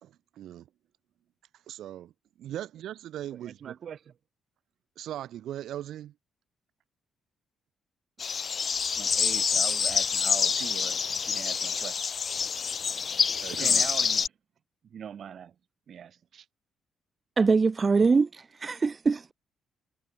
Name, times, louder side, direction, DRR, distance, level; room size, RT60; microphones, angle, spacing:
voice 1, 0.0-0.7 1.5-2.1 2.4-3.7 5.0-6.1 13.4-13.9, right 12 dB, 75° right, 1.3 m, -39 dB
voice 2, 3.3-4.1 8.2-8.3 8.9-12.0 13.6-14.3 14.8-15.5 15.9-16.5, right 8 dB, 60° right, 2.9 m, -41 dB
sound 1, 8.2-14.3, left 6 dB, 45° left, 1.4 m, -27 dB
voice 3, 17.4-19.3, right 4 dB, 30° right, 1.2 m, -23 dB
cardioid pair, 90°, 0 cm